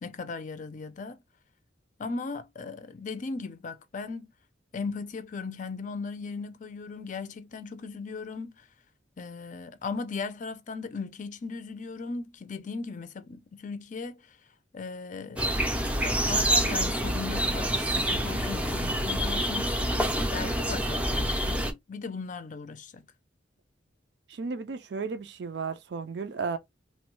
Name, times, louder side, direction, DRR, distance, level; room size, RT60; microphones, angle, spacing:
voice 1, 0.0-1.2 2.0-4.3 4.7-8.5 9.2-14.4 14.7-15.5 16.0-23.0, left 4 dB, 45° left, 0.5 m, -37 dB
sound 1, 15.4-21.7, right 1 dB, 10° right, 0.5 m, -27 dB
voice 2, 24.3-26.6, right 4 dB, 70° right, 0.5 m, -34 dB
3.1 x 2.2 x 3.0 m
head